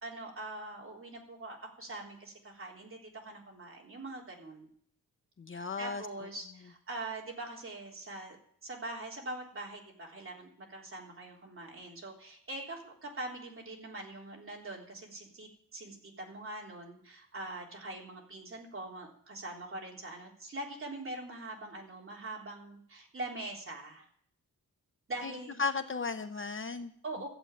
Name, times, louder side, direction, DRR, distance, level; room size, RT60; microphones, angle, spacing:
voice 1, 0.0-4.7 5.5-8.4 8.6-24.1 25.1-25.6 27.0-27.3, right 2 dB, 40° right, -1 dB, 3.6 m, -43 dB
voice 2, 5.4-6.0 25.2-25.3 25.6-26.9, left 4 dB, 35° left, 9 dB, 0.7 m, -35 dB
14.0 x 8.1 x 9.1 m, 0.64 s
wide cardioid pair, 150°, 34 cm